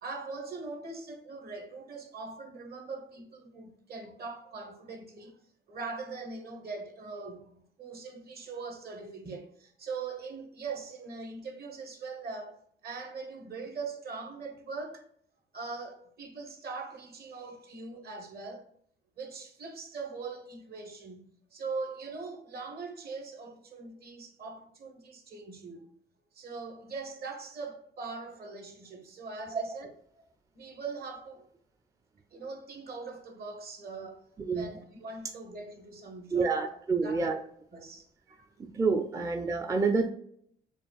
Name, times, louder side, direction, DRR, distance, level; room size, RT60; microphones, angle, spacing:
voice 1, 0.0-5.4 5.7-15.1 15.5-18.6 19.2-25.9 26.3-29.9 30.2-30.3 30.5-31.5 32.3-36.7 37.0-37.2 37.7-38.1 38.4-38.5, right 4 dB, 50° right, 1.0 m, -41 dB
voice 2, 34.4-34.7 36.3-37.4 38.7-40.1, right 4 dB, 15° right, 0.4 m, -28 dB
6.8 x 2.4 x 2.3 m
cardioid pair, 90°, 20 cm